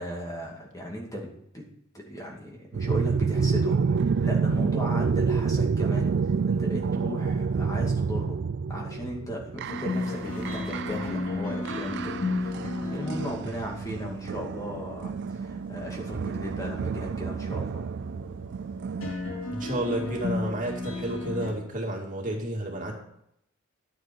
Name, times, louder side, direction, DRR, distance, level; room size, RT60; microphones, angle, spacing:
voice 1, 0.0-1.6 1.9-6.1 6.5-8.4 8.7-17.9, equal, 15° left, -1 dB, 2.4 m, -36 dB
sound 1, 2.7-19.1, right 5 dB, 55° right, 0.3 m, -28 dB
sound 2, 9.7-21.5, left 2 dB, 80° left, 3.0 m, -34 dB
voice 2, 19.5-22.9, right 1 dB, 40° right, -1 dB, 2.5 m, -31 dB
11.5 x 8.9 x 4.6 m, 0.76 s
head